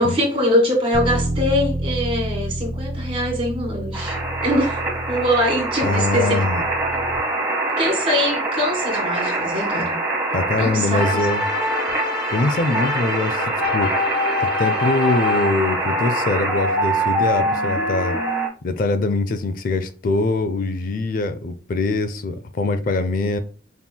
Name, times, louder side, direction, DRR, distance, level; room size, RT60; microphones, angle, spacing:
voice 1, 0.0-4.8 5.1-6.4 6.9-7.0 7.8-10.0 10.6-11.1, equal, 30° right, 1.7 m, -22 dB
Bass guitar, 0.9-7.2, right 1 dB, 25° left, 1.2 m, -29 dB
sound 1, 3.9-18.5, right 2 dB, 15° right, 1.0 m, -24 dB
voice 2, 5.8-6.6 10.3-11.4 12.3-13.9 14.4-18.2 18.6-23.4, left 2 dB, 45° left, 0.4 m, -23 dB
sound 2, 11.0-15.8, left 3 dB, 85° left, 1.6 m, -25 dB
5.4 x 3.0 x 2.2 m
head